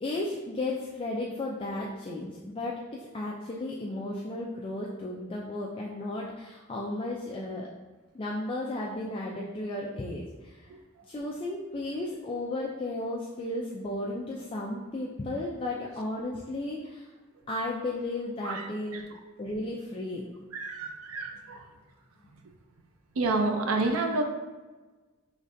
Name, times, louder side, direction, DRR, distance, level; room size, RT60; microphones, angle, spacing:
voice 1, 0.0-7.7 8.1-10.7 11.1-17.1 17.5-19.0 19.4-20.2, left 2 dB, 25° left, -4 dB, 0.3 m, -34 dB
voice 2, 20.5-21.6 23.2-24.2, right 3 dB, 80° right, 4 dB, 0.5 m, -29 dB
5.0 x 3.2 x 2.6 m, 1.2 s
head